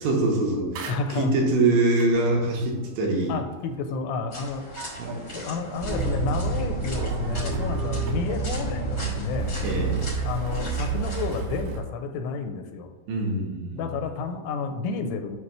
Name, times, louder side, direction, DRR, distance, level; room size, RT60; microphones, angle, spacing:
voice 1, 0.0-3.3 5.0-5.1 9.6-10.0 13.1-13.8, right 2 dB, 75° right, -2 dB, 3.1 m, -24 dB
sound 1, 0.7-11.8, right 3 dB, 90° right, 3.5 m, -40 dB
voice 2, 0.9-1.4 3.3-4.7 5.3-9.6 10.2-12.9 13.7-15.4, left 4 dB, 85° left, 6 dB, 3.0 m, -31 dB
sound 2, 4.3-11.4, left 1 dB, 60° left, 0.8 m, -40 dB
sound 3, 5.8-11.8, right 4 dB, 50° right, 1.8 m, -29 dB
8.0 x 2.8 x 5.8 m, 1.2 s
omnidirectional pair, 5.3 m